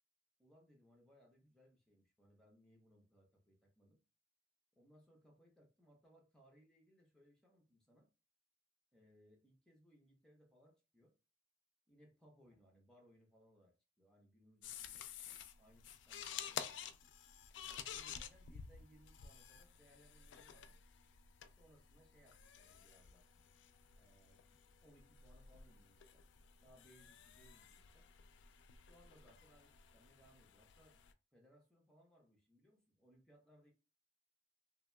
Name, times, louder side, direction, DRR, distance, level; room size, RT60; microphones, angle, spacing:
voice 1, 0.4-4.0 4.8-8.1 8.9-11.1 11.9-15.1 15.6-17.0 17.7-20.9 21.6-23.3 24.0-26.2 26.6-28.1 28.8-31.0 31.3-33.7, equal, 5° left, 0.8 m, -68 dB
sound 1, 14.6-31.1, left 8 dB, 75° left, 0.3 m, -52 dB
2.8 x 2.7 x 2.2 m
head